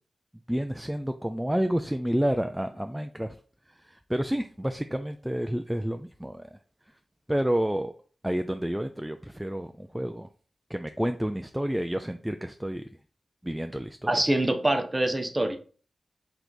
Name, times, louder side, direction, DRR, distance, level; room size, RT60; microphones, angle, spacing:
voice 1, 0.5-3.4 3.8-6.6 7.3-7.9 8.2-10.3 10.7-12.9 13.4-14.2, equal, 10° right, 7 dB, 0.3 m, -29 dB
voice 2, 14.1-15.6, right 1 dB, 25° right, 6 dB, 0.7 m, -25 dB
3.4 x 3.0 x 3.9 m, 0.41 s
cardioid pair, 50°, 0 cm